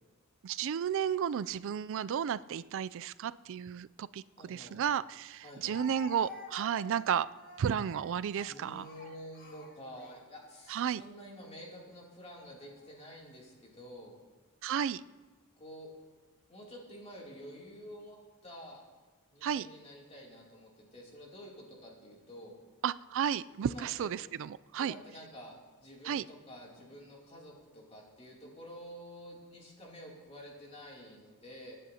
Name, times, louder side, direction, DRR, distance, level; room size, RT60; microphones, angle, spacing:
voice 1, 0.4-7.3 7.6-8.9 10.7-11.0 14.6-15.0 19.4-19.7 22.8-24.9 26.0-26.2, right 8 dB, 65° right, 17 dB, 0.3 m, -33 dB
voice 2, 4.4-4.8 5.4-5.7 8.3-14.2 15.6-15.9 16.5-18.2 18.4-18.8 19.3-22.6 23.6-24.1 24.8-31.8, equal, 30° left, -3 dB, 2.9 m, -49 dB
Speech, 4.6-4.7 5.7-10.6 11.4-11.6 12.6-13.2, left 2 dB, 45° left, 1.7 m, -50 dB
25.0 x 10.0 x 2.8 m, 1.3 s
head